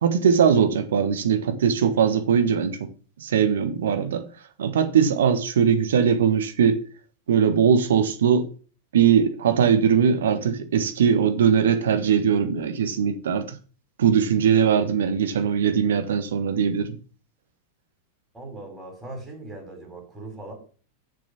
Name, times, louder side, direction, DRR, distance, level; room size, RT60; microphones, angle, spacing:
voice 1, 0.0-2.9 3.2-4.2 4.6-6.8 7.3-8.5 8.9-13.6 14.0-17.0, right 7 dB, 60° right, 1.3 m, -20 dB
voice 2, 18.3-20.5, right 2 dB, 10° right, 5.3 m, -39 dB
6.9 x 6.6 x 7.1 m
figure-of-eight pair, 90°, 0 cm